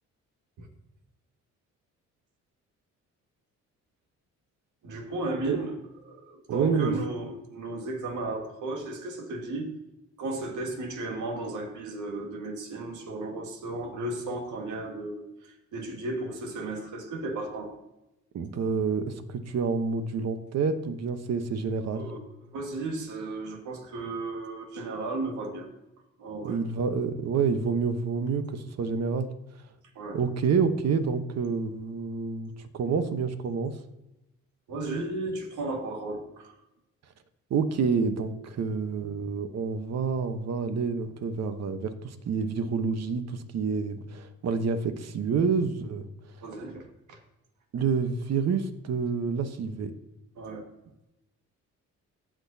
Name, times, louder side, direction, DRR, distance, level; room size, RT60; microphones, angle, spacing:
voice 1, 4.8-5.8 6.1-9.7 10.2-17.8 21.9-22.2 22.5-25.7 26.2-26.6 30.0-30.2 34.7-36.6 46.4-47.2 50.4-50.7, right 2 dB, 75° right, 4 dB, 1.8 m, -34 dB
voice 2, 6.5-6.9 18.3-22.1 26.4-29.3 30.1-33.8 37.5-46.1 47.7-49.9, right 5 dB, 60° right, 9 dB, 1.0 m, -28 dB
17.0 x 6.2 x 2.7 m, 0.92 s
cardioid pair, 90°, 30 cm